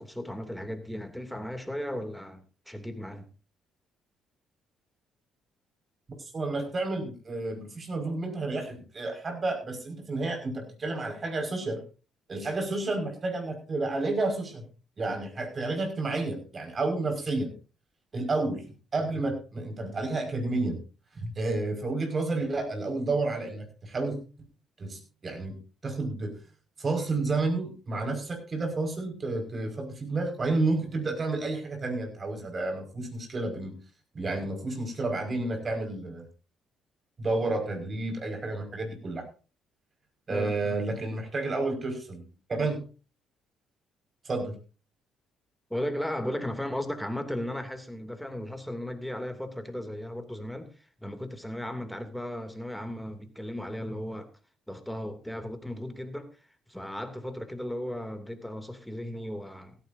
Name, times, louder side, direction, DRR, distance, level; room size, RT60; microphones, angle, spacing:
voice 1, 0.0-3.3 40.3-40.8 45.7-54.3 54.7-56.4 56.7-59.8, left 1 dB, 5° left, 2.8 m, -36 dB
voice 2, 6.3-11.8 12.3-14.6 15.0-17.5 18.1-18.7 18.9-20.8 21.2-24.2 24.8-26.3 26.8-33.8 34.1-36.2 37.2-39.2 40.3-42.8 44.2-44.6, right 2 dB, 40° right, 5.5 m, -31 dB
16.0 x 14.5 x 2.7 m
hypercardioid pair, 55°, 0 cm